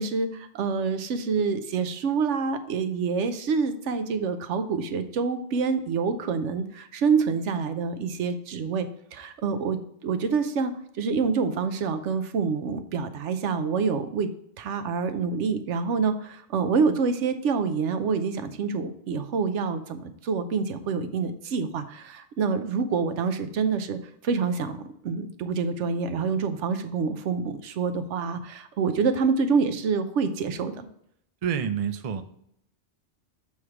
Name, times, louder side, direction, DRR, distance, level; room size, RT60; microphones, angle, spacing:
voice 1, 0.0-10.7 11.0-14.3 14.6-24.0 24.2-24.8 25.0-30.9, right 5 dB, 85° right, 9 dB, 1.0 m, -27 dB
voice 2, 31.4-32.2, right 7 dB, 45° right, 9 dB, 0.5 m, -28 dB
7.0 x 3.2 x 5.9 m, 0.72 s
omnidirectional pair, 1.2 m